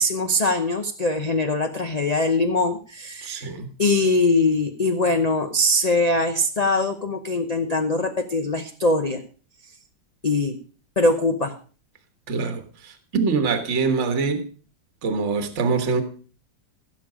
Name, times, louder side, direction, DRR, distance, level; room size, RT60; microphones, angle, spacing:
voice 1, 0.0-3.5 3.8-9.2 10.2-10.6 11.0-11.5, left 2 dB, 35° left, 0.7 m, -22 dB
voice 2, 3.2-3.7 12.3-14.5 15.0-16.0, right 4 dB, 40° right, 1.6 m, -24 dB
16.0 x 7.2 x 5.0 m
omnidirectional pair, 2.0 m